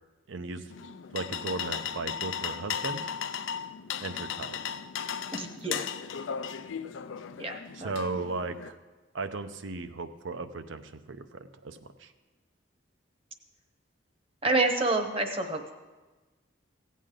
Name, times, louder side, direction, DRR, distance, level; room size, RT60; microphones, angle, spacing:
voice 1, 0.3-0.7 1.1-3.1 4.0-4.6 7.7-8.8 9.1-12.1, right 3 dB, 80° right, 10 dB, 0.7 m, -36 dB
sound 1, 0.7-8.7, left 8 dB, 85° left, 0.5 m, -36 dB
voice 2, 5.3-5.9 7.4-7.9 14.4-15.7, right 2 dB, 30° right, 5 dB, 0.9 m, -28 dB
16.0 x 8.4 x 3.7 m, 1.2 s
head